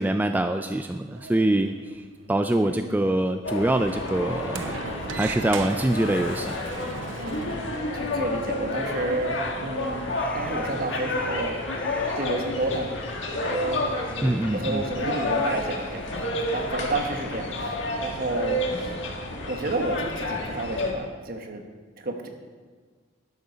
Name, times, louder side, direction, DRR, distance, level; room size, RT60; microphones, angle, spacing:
voice 1, 0.0-2.0 2.3-4.8 5.2-6.6 14.2-14.8, right 1 dB, 10° right, 7 dB, 0.3 m, -24 dB
Sliding door, 0.9-7.8, right 5 dB, 80° right, 0.6 m, -40 dB
voice 2, 2.6-3.1 7.1-7.6 7.9-10.0 10.3-11.6 12.2-12.9 13.4-13.9 14.5-19.0 19.5-21.6 22.0-22.3, right 2 dB, 50° right, 4 dB, 1.3 m, -31 dB
sound 1, 3.4-20.9, left 2 dB, 75° left, 1.5 m, -30 dB
sound 2, 9.8-17.6, left 1 dB, 5° left, 0.7 m, -47 dB
11.5 x 11.5 x 4.1 m, 1.5 s
head